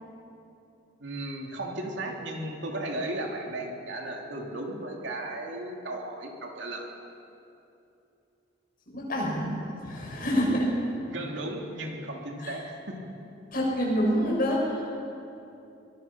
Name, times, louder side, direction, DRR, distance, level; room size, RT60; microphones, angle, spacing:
voice 1, 1.0-6.9 11.1-13.0, right 1 dB, 65° right, 1 dB, 2.8 m, -35 dB
voice 2, 8.9-9.5 9.8-10.7 12.4-12.6 13.5-14.9, equal, 50° left, -3 dB, 6.7 m, -27 dB
23.5 x 21.0 x 6.0 m, 2.7 s
head